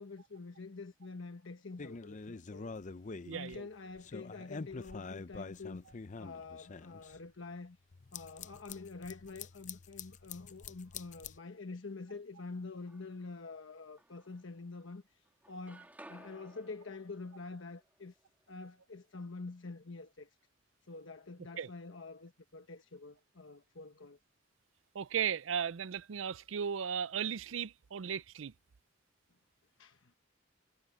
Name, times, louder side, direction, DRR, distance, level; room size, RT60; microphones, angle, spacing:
voice 1, 0.0-2.7 3.3-5.8 6.2-7.8 8.1-15.0 15.5-18.1 18.5-20.3 20.9-24.2 29.8-30.2, left 3 dB, 75° left, 1.1 m, -47 dB
sound 1, 1.8-3.6 4.0-7.2 7.9-11.4, left 4 dB, 40° left, 0.6 m, -46 dB
voice 2, 3.2-3.7 21.6-21.7 24.9-28.5, right 7 dB, 85° right, 0.5 m, -36 dB
sound 2, 12.5-13.4 14.0-15.0 15.2-19.2, right 1 dB, 10° right, 2.7 m, -59 dB
head